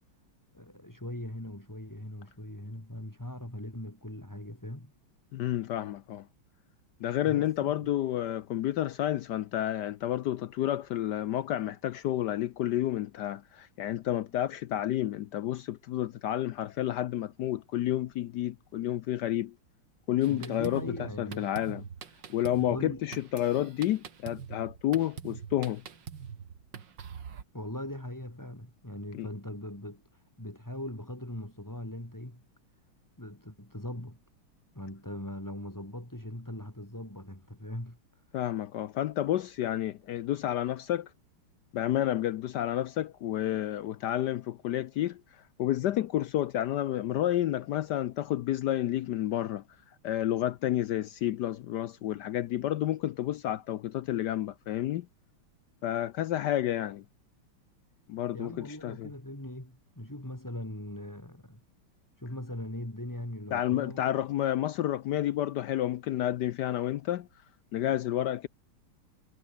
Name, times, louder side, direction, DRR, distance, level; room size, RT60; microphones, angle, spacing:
voice 1, 0.5-4.9 7.2-7.9 20.2-21.7 22.7-23.1 27.5-32.4 33.2-34.2 34.7-38.0 58.3-61.6 62.2-64.1, left 1 dB, 10° left, 2.9 m, -40 dB
voice 2, 5.3-6.2 7.0-19.5 20.1-21.8 22.3-25.8 29.1-29.3 38.3-41.1 41.7-45.2 45.6-49.6 50.0-55.1 55.8-57.0 58.1-59.1 63.5-67.3 67.7-68.5, left 12 dB, 70° left, 1.0 m, -30 dB
Drum kit, 20.2-27.4, right 7 dB, 60° right, 2.3 m, -44 dB
omnidirectional pair, 2.4 m